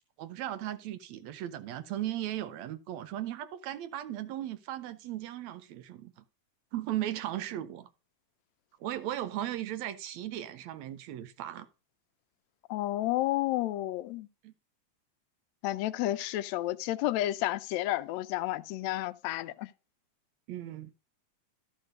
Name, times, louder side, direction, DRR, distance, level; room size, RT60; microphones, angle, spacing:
voice 1, 0.2-6.2 6.7-7.9 8.8-11.7 14.4-14.5 20.5-20.9, right 13 dB, 75° right, 1.7 m, -37 dB
voice 2, 12.7-14.3 15.6-19.7, left 15 dB, 80° left, 1.6 m, -31 dB
13.5 x 4.5 x 6.4 m
omnidirectional pair, 3.7 m